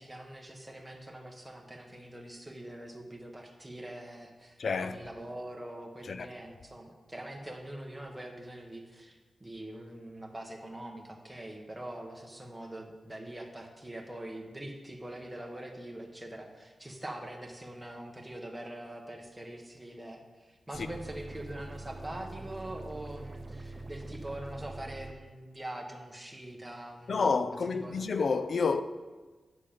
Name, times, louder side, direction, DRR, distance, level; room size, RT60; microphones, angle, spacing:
voice 1, 0.0-28.0, right 1 dB, 10° right, 1.1 m, -43 dB
voice 2, 4.6-5.0 6.1-6.3 27.1-28.8, left 4 dB, 55° left, 0.4 m, -29 dB
sound 1, 20.7-25.1, right 2 dB, 25° right, 0.5 m, -44 dB
8.9 x 6.7 x 5.2 m
wide cardioid pair, 155°, 0 cm